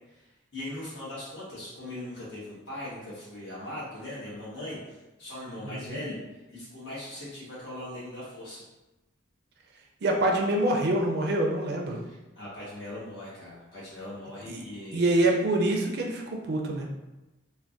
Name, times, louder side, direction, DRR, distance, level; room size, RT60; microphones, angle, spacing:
voice 1, 0.5-6.2 6.5-8.6 12.0-15.1, left 1 dB, 60° left, -8 dB, 1.2 m, -40 dB
voice 2, 5.6-6.0 10.0-12.0 14.5-14.6 14.9-16.9, right 1 dB, 50° right, 1 dB, 0.4 m, -26 dB
3.3 x 2.2 x 2.5 m, 1.0 s
head